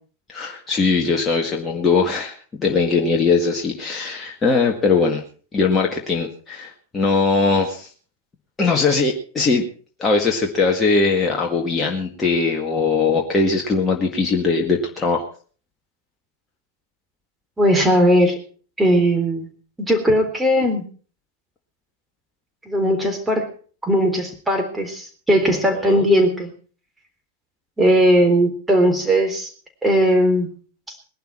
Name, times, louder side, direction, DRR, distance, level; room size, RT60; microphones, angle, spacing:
voice 1, 0.3-5.2 5.5-7.9 8.6-9.7 10.0-15.3 25.7-26.0, left 4 dB, 15° left, 0 dB, 2.0 m, -20 dB
voice 2, 17.6-18.3 18.8-19.5 19.8-20.8 22.7-23.5 23.8-26.5 27.8-29.5 29.8-30.5, equal, 10° right, 4 dB, 3.7 m, -18 dB
20.0 x 11.5 x 4.5 m, 0.42 s
figure-of-eight pair, 90°, 0 cm